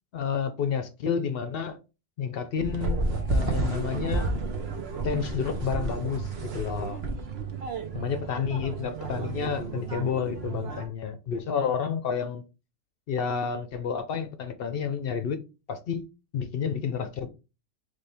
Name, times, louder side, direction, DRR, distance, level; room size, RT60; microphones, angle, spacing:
voice 1, 0.1-1.8 2.2-4.3 5.0-7.0 7.9-12.4 13.1-15.4 15.7-16.1 16.3-17.3, left 7 dB, 60° left, 0.7 m, -30 dB
sound 1, 2.6-10.9, right 3 dB, 60° right, 1.0 m, -31 dB
4.3 x 3.2 x 3.3 m
omnidirectional pair, 1.2 m